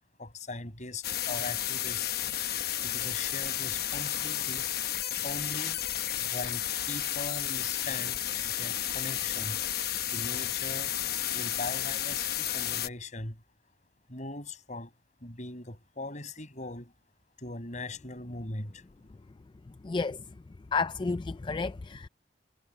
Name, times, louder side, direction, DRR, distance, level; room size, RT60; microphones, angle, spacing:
voice 1, 0.2-2.1 2.8-4.7 5.2-5.8 6.2-9.6 10.1-11.0 11.3-13.4 14.1-14.9 15.2-16.9 17.4-18.8, left 2 dB, 45° left, 7.1 m, -40 dB
sound 1, 1.0-12.9, left 12 dB, 60° left, 1.0 m, -32 dB
voice 2, 19.8-20.2 20.7-22.1, left 4 dB, 25° left, 0.4 m, -31 dB
head